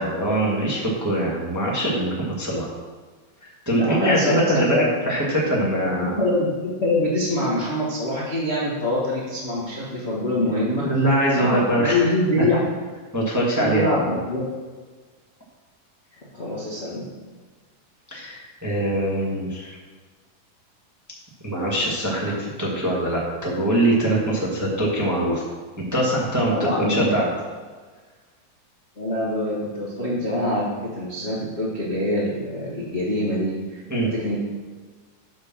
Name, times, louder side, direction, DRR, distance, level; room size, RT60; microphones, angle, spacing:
voice 1, 0.0-2.7 3.4-6.1 10.4-10.5 10.8-12.0 13.1-14.2 18.1-19.8 21.4-25.4 25.9-27.3 33.9-34.1, right 1 dB, 10° right, -4 dB, 0.8 m, -23 dB
voice 2, 3.7-4.8 6.0-10.9 11.4-12.6 13.6-14.5 16.3-17.1 26.5-27.1 29.0-33.8 34.1-34.4, left 1 dB, 65° left, -7 dB, 0.6 m, -24 dB
7.9 x 5.6 x 6.1 m, 1.4 s
omnidirectional pair, 3.6 m